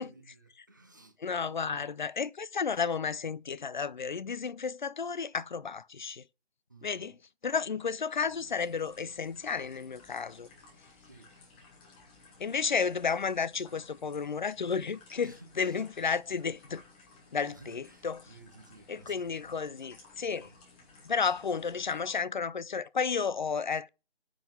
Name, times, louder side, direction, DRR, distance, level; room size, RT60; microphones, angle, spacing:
voice 1, 0.0-1.9 6.7-7.2 11.0-11.3 15.2-15.8 17.4-19.6 20.4-20.6, right 3 dB, 20° right, 0.5 m, -55 dB
voice 2, 1.2-6.2 6.8-7.1 7.4-10.5 12.4-16.8 17.3-18.2 18.9-20.5 21.0-23.9, left 5 dB, 50° left, 0.4 m, -32 dB
sound 1, 8.2-22.2, left 3 dB, 10° left, 0.9 m, -57 dB
9.2 x 3.8 x 6.7 m
figure-of-eight pair, 160°, 32 cm